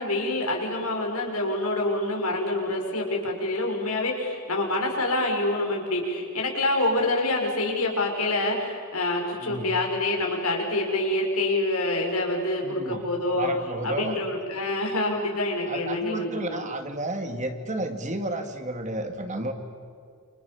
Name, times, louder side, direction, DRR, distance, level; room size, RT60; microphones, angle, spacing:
voice 1, 0.0-13.5 13.8-16.7, left 2 dB, 85° left, 1 dB, 6.1 m, -26 dB
voice 2, 9.4-9.7 12.6-13.0 13.3-14.2 15.6-19.5, right 1 dB, 35° right, 6 dB, 2.2 m, -32 dB
28.5 x 27.5 x 7.2 m, 2.3 s
head